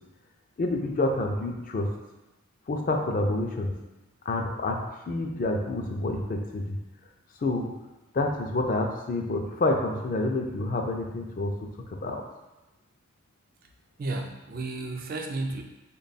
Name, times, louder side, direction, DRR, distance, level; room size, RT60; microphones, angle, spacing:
voice 1, 0.6-1.9 2.7-3.7 4.3-4.8 5.1-6.8 7.4-7.7 8.1-11.5 11.9-12.2, left 2 dB, 40° left, 3 dB, 0.3 m, -28 dB
voice 2, 14.0-15.6, right 2 dB, 40° right, 4 dB, 0.3 m, -32 dB
3.4 x 2.2 x 4.0 m, 1.0 s
head